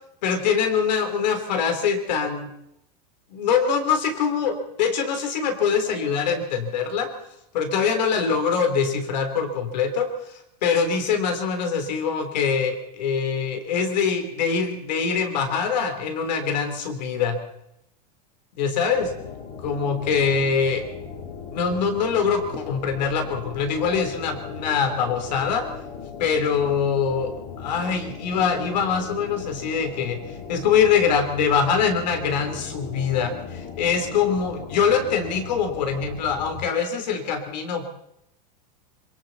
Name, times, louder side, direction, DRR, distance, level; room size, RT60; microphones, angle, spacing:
voice 1, 0.2-2.5 3.3-7.1 7.5-10.3 10.6-17.4 18.6-19.1 19.6-20.8 21.5-25.6 26.2-30.2 30.5-37.8, left 6 dB, 85° left, 6 dB, 3.5 m, -23 dB
sound 1, 18.9-36.6, left 6 dB, 50° left, 6.4 m, -38 dB
26.0 x 24.5 x 4.1 m, 0.79 s
supercardioid pair, 135°, 21 cm